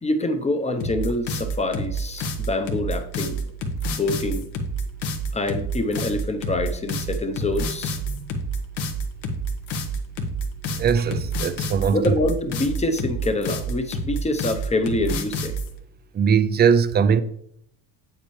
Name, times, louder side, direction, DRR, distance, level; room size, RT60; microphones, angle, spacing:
voice 1, 0.0-3.4 3.9-4.4 5.3-8.0 11.9-15.6, left 2 dB, 15° left, 0.7 m, -26 dB
sound 1, 0.8-15.7, right 1 dB, 70° left, 1.4 m, -28 dB
voice 2, 10.8-12.1 16.1-17.2, right 7 dB, 25° right, 0.3 m, -20 dB
8.0 x 7.3 x 3.2 m
cardioid pair, 110°, 47 cm